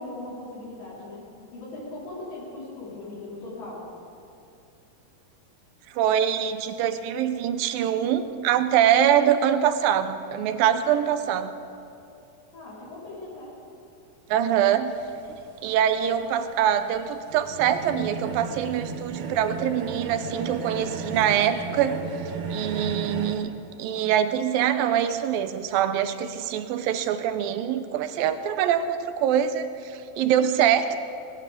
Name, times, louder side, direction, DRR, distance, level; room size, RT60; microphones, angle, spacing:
voice 1, 0.0-3.9 12.5-13.6, left 2 dB, 65° left, -8 dB, 6.3 m, -39 dB
voice 2, 5.9-11.5 14.3-14.9 15.6-22.0 22.5-23.5 23.8-31.0, right 9 dB, 80° right, 10 dB, 2.4 m, -24 dB
sound 1, 14.9-23.3, right 4 dB, 65° right, 1.3 m, -35 dB
19.5 x 18.0 x 3.7 m, 2.6 s
omnidirectional pair, 4.2 m